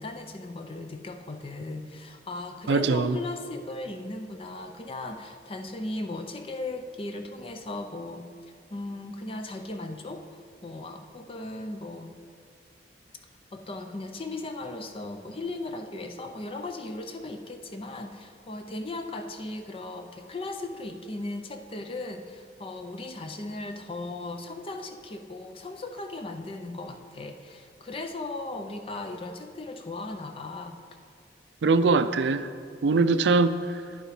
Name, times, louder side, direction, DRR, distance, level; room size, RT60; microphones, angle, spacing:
voice 1, 0.0-8.3 8.7-12.2 13.5-30.8, left 2 dB, 30° left, 6 dB, 0.5 m, -37 dB
voice 2, 2.7-3.2 31.6-32.5 32.8-33.8, right 3 dB, 75° right, 12 dB, 0.4 m, -22 dB
10.0 x 7.9 x 4.9 m, 2.1 s
head